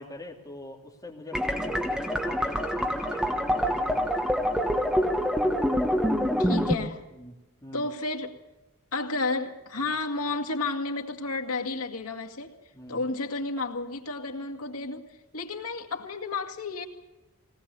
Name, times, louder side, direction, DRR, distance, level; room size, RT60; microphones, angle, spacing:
voice 1, 0.0-4.3 7.1-7.9 9.8-9.9 12.7-13.0, left 1 dB, 15° left, -1 dB, 2.8 m, -43 dB
sound 1, 1.3-6.8, equal, 5° right, 1.4 m, -26 dB
voice 2, 6.4-7.0 7.7-8.4 8.9-12.6 12.9-16.9, left 3 dB, 85° left, 4 dB, 2.1 m, -32 dB
21.0 x 19.0 x 6.9 m, 1.0 s
head